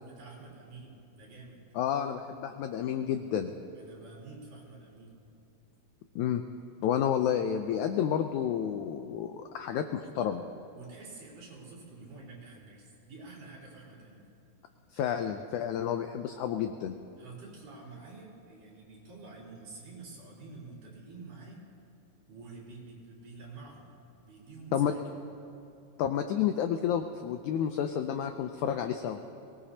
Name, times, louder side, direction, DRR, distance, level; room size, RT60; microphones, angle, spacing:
voice 1, 0.0-1.7 3.7-5.2 10.7-14.3 17.2-21.6 22.3-23.9 24.2-25.2, right 3 dB, 65° right, -5 dB, 5.0 m, -48 dB
voice 2, 1.8-3.5 6.2-6.4 6.8-10.4 14.9-17.0 24.7-24.9 26.0-29.2, left 9 dB, 90° left, 7 dB, 1.7 m, -30 dB
22.5 x 18.5 x 2.8 m, 2.8 s
omnidirectional pair, 4.1 m